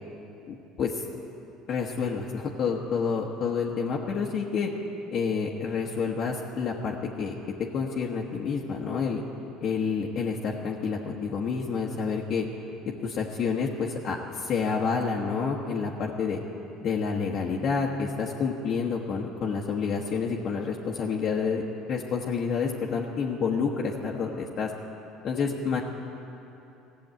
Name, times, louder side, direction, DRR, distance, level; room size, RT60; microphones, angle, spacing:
voice 1, 0.5-1.0 1.7-4.7 5.1-7.3 7.7-9.2 9.6-12.5 13.0-16.4 16.8-21.6 21.9-24.7 25.2-25.8, left 5 dB, 55° left, -2 dB, 1.1 m, -29 dB
15.0 x 7.1 x 9.0 m, 3.0 s
hypercardioid pair, 80°, 0 cm